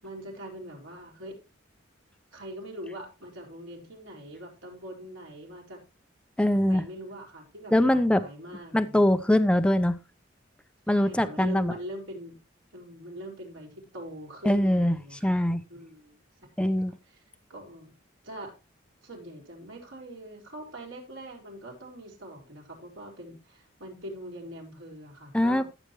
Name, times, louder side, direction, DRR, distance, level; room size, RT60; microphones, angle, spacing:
voice 1, 0.0-1.3 2.3-5.8 6.5-9.0 10.9-12.4 12.7-15.4 15.7-16.2 16.6-16.8 17.0-17.2 17.5-17.9 18.2-18.5 19.0-25.6, right 1 dB, 75° right, -1 dB, 4.4 m, -42 dB
voice 2, 6.4-6.8 7.7-8.2 8.7-10.0 10.9-11.7 14.4-15.0 15.2-15.6 16.6-16.9 25.3-25.6, left 1 dB, 5° left, 10 dB, 0.5 m, -22 dB
14.0 x 7.9 x 3.0 m, 0.28 s
head